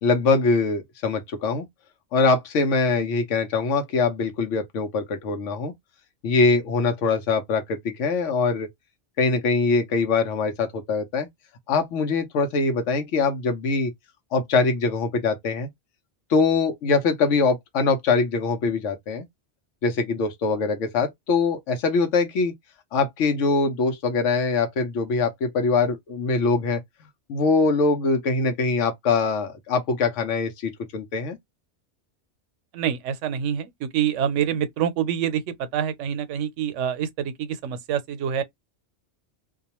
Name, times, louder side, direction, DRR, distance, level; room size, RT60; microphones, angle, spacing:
voice 1, 0.0-1.7 2.1-5.7 6.2-8.7 9.2-11.3 11.7-13.9 14.3-15.7 16.3-19.2 19.8-22.5 22.9-26.8 27.3-31.4, left 4 dB, 85° left, 1.0 m, -23 dB
voice 2, 32.7-35.4 35.7-38.4, right 9 dB, 85° right, 0.9 m, -26 dB
2.4 x 2.2 x 2.8 m
omnidirectional pair, 1.2 m